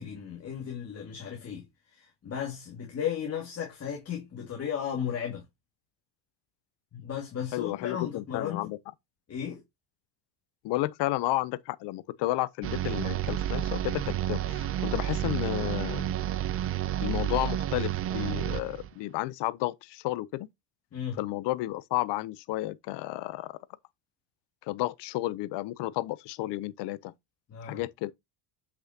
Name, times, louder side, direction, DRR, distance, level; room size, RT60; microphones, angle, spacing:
voice 1, 0.0-1.6 1.9-5.4 6.9-8.7 9.3-9.6 20.9-21.2 27.5-27.8, left 8 dB, 30° left, 2.1 m, -35 dB
voice 2, 7.5-8.8 10.6-16.1 17.0-20.5 21.2-23.5 24.7-27.1 27.6-28.1, left 17 dB, 60° left, 0.8 m, -32 dB
sound 1, 12.6-18.9, right 12 dB, 30° right, 0.4 m, -30 dB
7.8 x 6.2 x 2.8 m
cardioid pair, 140°, 47 cm